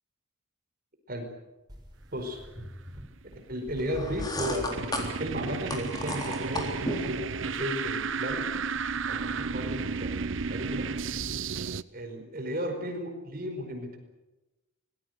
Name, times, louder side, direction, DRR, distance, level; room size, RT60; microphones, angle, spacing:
sound 1, 1.7-3.0 3.3-4.7 5.0-5.3 5.8-6.0 6.5-8.0 8.3-11.3, equal, 20° right, 5.4 m, -46 dB
voice 1, 2.1-2.4 3.5-8.7 9.1-10.1 10.5-10.9 11.9-14.0, equal, 45° right, 5 dB, 4.9 m, -35 dB
sound 2, 3.7-11.8, right 5 dB, 70° right, 0.8 m, -33 dB
sound 3, 3.9-7.2, left 1 dB, 20° left, 3.8 m, -34 dB
25.5 x 19.5 x 8.1 m, 1.0 s
head